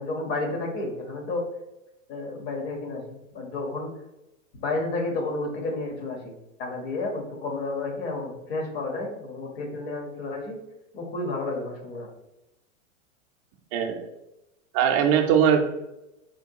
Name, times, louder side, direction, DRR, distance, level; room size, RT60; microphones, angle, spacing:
voice 1, 0.0-1.4 2.1-3.9 4.6-6.3 6.6-10.6 10.9-12.1, left 2 dB, 50° left, 2 dB, 1.1 m, -31 dB
voice 2, 13.7-14.1 14.7-15.7, right 8 dB, 30° right, 4 dB, 0.3 m, -21 dB
4.3 x 2.2 x 2.7 m, 0.92 s
hypercardioid pair, 120°, 39 cm